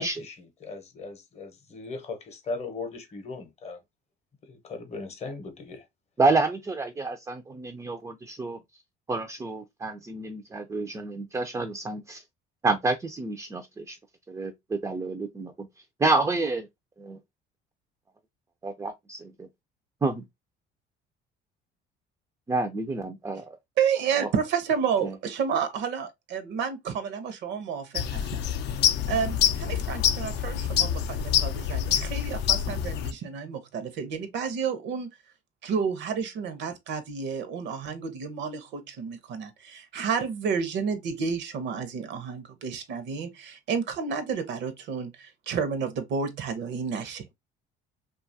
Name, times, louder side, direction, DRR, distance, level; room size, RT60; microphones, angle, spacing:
voice 1, 0.0-3.8 4.4-5.8, left 3 dB, 35° left, 0.7 m, -38 dB
voice 2, 6.2-8.6 9.1-12.2 12.6-14.0 14.3-15.7 16.0-16.7 17.0-17.2 18.6-19.3 20.0-20.2 22.5-23.6 24.2-24.3 25.0-25.1, right 3 dB, 15° right, 0.3 m, -28 dB
voice 3, 23.8-28.4 29.1-35.1 35.6-47.3, right 6 dB, 65° right, 0.7 m, -30 dB
sound 1, 27.9-33.1, left 9 dB, 60° left, 0.4 m, -26 dB
2.7 x 2.3 x 2.5 m
cardioid pair, 115°, 20 cm